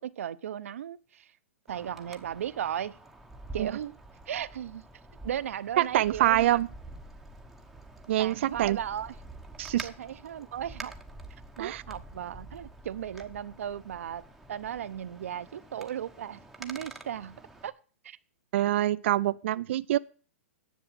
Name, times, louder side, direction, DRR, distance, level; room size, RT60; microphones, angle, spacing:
voice 1, 0.0-1.3 1.7-3.0 3.5-4.0 4.3-4.8 5.2-6.6 8.2-9.1 9.8-10.9 11.6-14.2 14.5-17.7 18.0-18.2, right 10 dB, 75° right, 0.8 m, -36 dB
Wind, 1.7-17.7, right 2 dB, ahead, 1.0 m, -47 dB
voice 2, 5.8-6.7 8.1-8.8 9.6-9.9 11.6-11.8 18.5-20.0, right 14 dB, 60° right, 0.4 m, -25 dB
10.5 x 7.2 x 7.6 m
hypercardioid pair, 145°, 8 cm